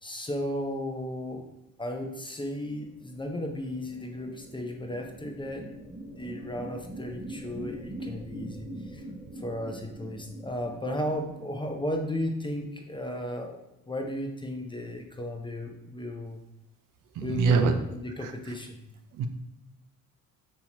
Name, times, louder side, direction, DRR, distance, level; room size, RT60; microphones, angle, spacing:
voice 1, 0.0-1.5 1.8-5.7 6.1-9.0 9.4-13.6 13.9-16.4 17.2-18.8, left 1 dB, 15° left, 2 dB, 0.5 m, -34 dB
sound 1, 2.8-12.5, right 1 dB, 20° right, 0.9 m, -43 dB
voice 2, 17.1-17.7 18.2-18.5 19.1-19.3, right 5 dB, 60° right, 7 dB, 0.5 m, -25 dB
5.7 x 2.8 x 2.8 m, 0.87 s
cardioid pair, 100°, 36 cm